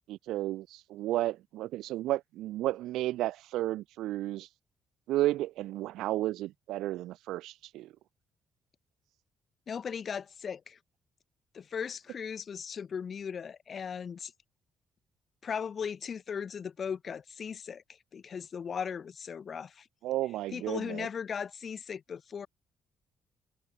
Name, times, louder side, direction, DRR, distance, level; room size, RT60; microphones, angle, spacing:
voice 1, 0.0-4.5 5.1-7.9 20.0-21.1, right 15 dB, 90° right, 1.1 m, -33 dB
voice 2, 9.7-10.8 11.5-14.3 15.4-17.8 18.1-19.9 20.5-22.5, left 7 dB, 50° left, 1.2 m, -37 dB
cardioid pair, 90°, 0 cm